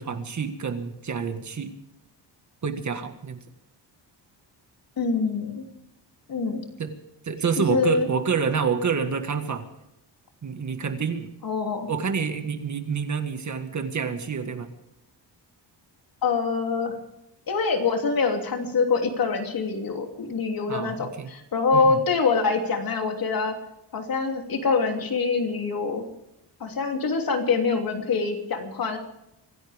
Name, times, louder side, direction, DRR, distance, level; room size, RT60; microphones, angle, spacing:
voice 1, 0.0-1.7 2.6-3.4 6.8-6.9 7.2-9.7 10.4-11.3 11.9-14.7 20.7-21.3 21.7-22.0, right 6 dB, 40° right, 7 dB, 1.8 m, -28 dB
voice 2, 5.0-5.6 6.3-6.6 7.6-8.1 11.4-11.9 16.2-16.9 17.5-23.6 23.9-26.0 26.6-29.0, left 4 dB, 55° left, 3 dB, 3.1 m, -25 dB
25.0 x 16.0 x 3.6 m, 0.84 s
wide cardioid pair, 155°, 42 cm